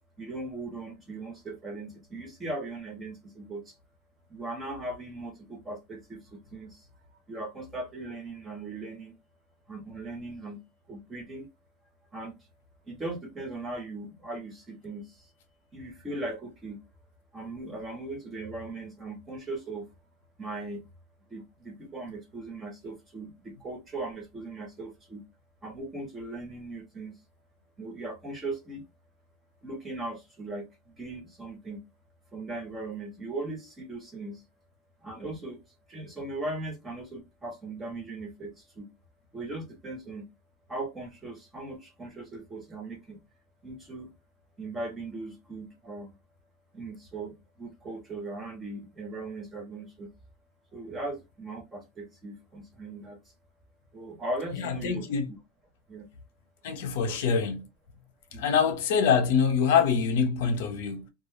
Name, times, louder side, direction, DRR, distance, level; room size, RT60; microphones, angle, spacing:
voice 1, 0.2-3.7 4.3-6.8 7.3-9.1 9.7-10.6 10.9-11.5 12.1-12.3 12.9-15.0 15.7-16.8 17.3-19.9 20.4-20.8 21.3-25.2 25.6-27.1 27.8-28.8 29.6-30.7 31.0-31.8 32.3-34.4 35.0-35.6 35.9-38.9 39.3-40.3 40.7-43.2 43.6-44.1 44.6-46.1 46.7-47.3 47.6-50.1 50.7-53.2 53.9-55.1 55.9-56.1 57.1-57.2 58.3-58.4, right 2 dB, 10° right, 0.5 m, -38 dB
voice 2, 54.5-55.3 56.6-57.7 58.4-61.1, left 6 dB, 65° left, 0.7 m, -25 dB
2.2 x 2.1 x 3.1 m
supercardioid pair, 175°, 0 cm